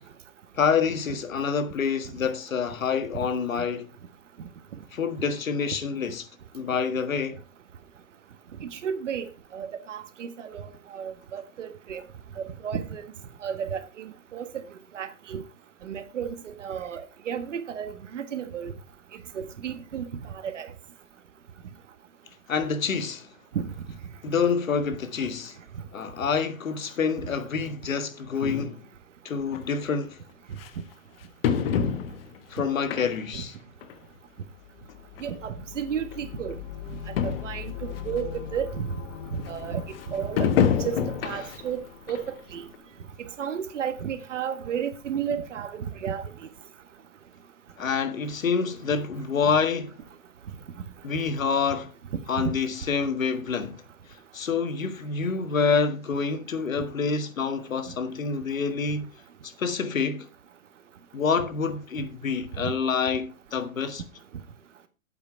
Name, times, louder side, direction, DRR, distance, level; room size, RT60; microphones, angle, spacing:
voice 1, 0.5-3.9 4.9-6.3 6.5-7.4 22.5-23.3 24.2-25.6 25.9-28.8 29.2-30.2 32.5-33.5 47.8-50.0 51.0-51.9 52.3-53.8 54.3-59.1 59.4-60.3 61.1-64.0, left 5 dB, 70° left, 1.6 m, -27 dB
voice 2, 8.6-9.3 9.5-12.0 12.4-13.0 13.4-14.5 14.9-15.4 15.8-18.7 19.3-20.7 23.5-23.7 33.3-33.4 35.2-36.6 37.1-38.9 39.4-40.5 40.8-42.2 42.5-42.6 43.2-46.3 52.4-52.5 62.6-62.7, right 8 dB, 60° right, 1.6 m, -33 dB
sound 1, 29.5-29.6 30.6-30.7 31.4-32.4 32.9-33.4 33.8-33.9 34.9-35.0 35.2-35.3 36.1-36.2 36.5-36.6 36.9-37.0 37.2-37.6 38.2-38.3 40.4-41.7 42.1-42.2 42.7-42.8, left 8 dB, 45° left, 1.2 m, -26 dB
sound 2, 34.4-43.3, left 10 dB, 20° left, 0.7 m, -41 dB
8.5 x 8.4 x 4.4 m
figure-of-eight pair, 125°, 42 cm